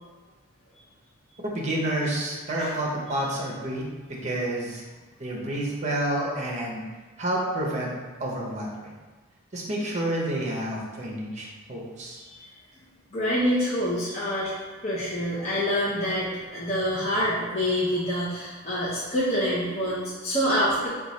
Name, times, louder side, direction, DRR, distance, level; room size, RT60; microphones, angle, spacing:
voice 1, 1.4-4.8 5.2-6.8 7.2-7.9 8.2-8.9 9.5-12.2, right 1 dB, 35° right, -3 dB, 0.6 m, -29 dB
voice 2, 13.1-14.5 14.8-20.9, equal, 30° left, -9 dB, 0.5 m, -26 dB
3.0 x 2.3 x 4.0 m, 1.3 s
head